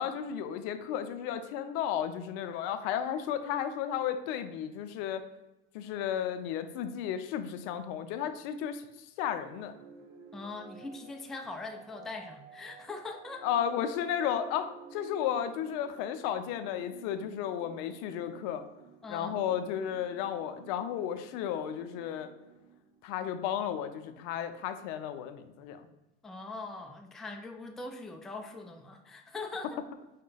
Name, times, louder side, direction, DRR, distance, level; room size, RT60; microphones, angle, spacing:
voice 1, 0.0-5.2 5.7-8.9 9.2-9.7 13.4-18.7 19.1-22.3 23.0-25.8, left 9 dB, 70° left, 9 dB, 0.5 m, -33 dB
sound 1, 9.5-23.2, right 6 dB, 70° right, 0.7 m, -53 dB
voice 2, 10.3-13.5 14.2-14.3 19.0-19.4 26.2-29.8, left 3 dB, ahead, 3 dB, 0.3 m, -42 dB
4.8 x 2.2 x 3.8 m, 1.0 s
supercardioid pair, 85°, 32 cm